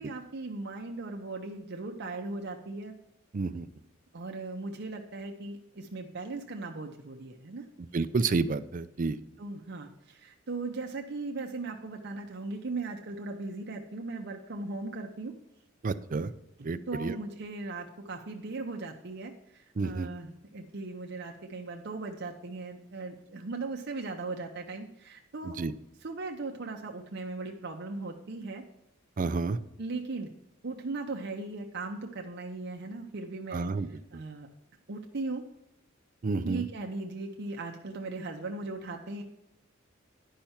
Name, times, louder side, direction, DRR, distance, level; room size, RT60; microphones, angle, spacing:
voice 1, 0.0-2.9 4.1-7.7 9.4-15.3 16.9-25.6 26.0-28.6 29.8-30.3 30.6-33.7 34.1-34.5 34.9-35.4 36.4-39.2, right 3 dB, 55° right, 2 dB, 0.8 m, -38 dB
voice 2, 3.3-3.7 7.8-9.2 15.8-16.3 16.6-17.2 19.8-20.1 25.4-25.7 29.2-29.6 33.5-34.2 36.2-36.6, right 4 dB, 40° right, 12 dB, 0.4 m, -30 dB
10.0 x 5.7 x 4.3 m, 0.86 s
head